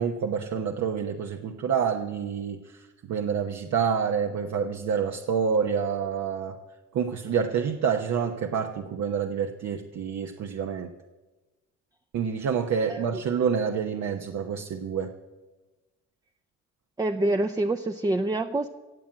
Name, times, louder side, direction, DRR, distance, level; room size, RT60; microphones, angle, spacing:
voice 1, 0.0-6.6 6.9-10.9 12.1-15.1, right 7 dB, 65° right, 1.0 m, -28 dB
voice 2, 17.0-18.7, right 2 dB, 10° right, 0.6 m, -26 dB
17.0 x 7.5 x 8.6 m
cardioid pair, 90°, 30 cm